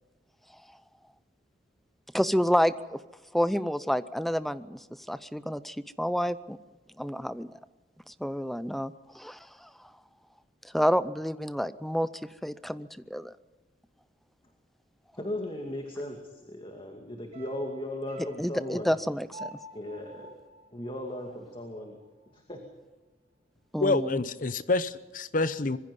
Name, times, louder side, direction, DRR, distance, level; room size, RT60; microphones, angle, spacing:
voice 1, 2.1-3.0 3.3-4.8 5.1-6.6 7.0-7.5 8.1-9.7 10.7-12.1 12.4-13.3 18.4-19.5 23.7-24.2, equal, ahead, 15 dB, 0.6 m, -29 dB
voice 2, 15.2-18.9 19.7-20.3 20.7-22.0 22.3-22.6, left 1 dB, 30° left, 3 dB, 2.4 m, -37 dB
sound 1, 17.3-21.7 22.0-22.1, right 2 dB, 40° right, 3.7 m, -48 dB
voice 3, 23.8-25.8, left 3 dB, 50° left, 14 dB, 0.9 m, -27 dB
25.0 x 21.5 x 5.4 m, 1.2 s
head